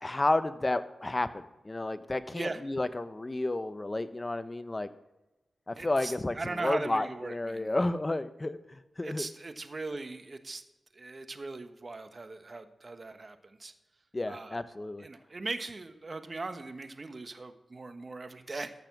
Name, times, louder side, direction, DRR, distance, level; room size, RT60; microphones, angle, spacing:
voice 1, 0.0-4.9 5.7-6.4 6.6-9.3 14.1-15.1, left 2 dB, 30° left, 13 dB, 0.8 m, -31 dB
voice 2, 2.3-2.6 5.8-7.8 9.0-10.6 10.9-13.7 14.3-14.6 15.0-18.7, right 3 dB, 50° right, 9 dB, 1.1 m, -39 dB
13.5 x 6.9 x 6.1 m, 1.0 s
cardioid pair, 45°, 0 cm